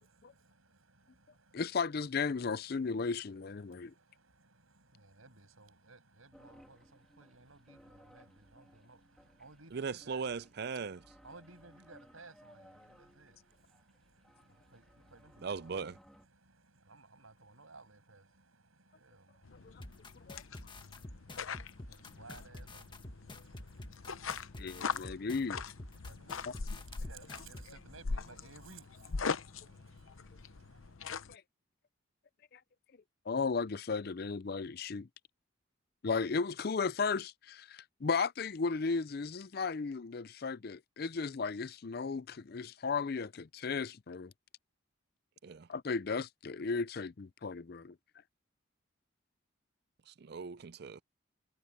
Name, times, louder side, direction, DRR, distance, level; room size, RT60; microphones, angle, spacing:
voice 1, 0.0-31.0, right 3 dB, 85° right, 7.0 m, -59 dB
voice 2, 1.5-3.9 20.3-20.4 24.6-25.6 31.3-31.4 32.5-32.6 33.3-35.1 36.0-44.3 45.7-48.0, left 4 dB, 50° left, 0.5 m, -35 dB
sound 1, 6.3-16.3, equal, ahead, 3.0 m, -62 dB
voice 3, 9.7-11.0 15.4-15.9 45.4-45.7 50.1-51.0, right 5 dB, 50° right, 0.4 m, -39 dB
sound 2, 19.4-31.3, left 5 dB, 80° left, 0.8 m, -42 dB
sound 3, 19.8-27.7, left 1 dB, 25° left, 1.7 m, -48 dB
head